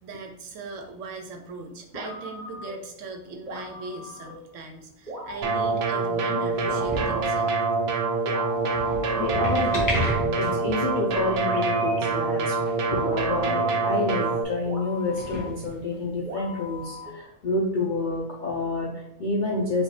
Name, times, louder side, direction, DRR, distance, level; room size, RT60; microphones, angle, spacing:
voice 1, 0.0-7.5, right 3 dB, 70° right, 3 dB, 0.9 m, -39 dB
sound 1, 1.9-2.9 3.5-4.5 5.1-6.1 6.7-7.7 8.3-9.3 9.9-10.9 11.5-12.2 13.1-14.1 14.7-15.7 16.3-17.3, right 1 dB, 35° right, 0.9 m, -39 dB
sound 2, 5.3-5.9 6.5-7.4 8.5-10.9 11.2-11.3 11.8-11.9 12.1-12.2 12.5-13.2 13.5-13.6 14.5-14.6 15.0-16.2 17.0-17.1, left 1 dB, 15° left, 1.1 m, -33 dB
sound 3, 5.4-14.4, right 3 dB, 85° right, 0.5 m, -25 dB
voice 2, 9.1-9.9 10.3-12.6 12.8-19.8, left 3 dB, 60° left, -4 dB, 0.5 m, -28 dB
5.1 x 2.4 x 3.1 m, 0.75 s
omnidirectional pair, 1.5 m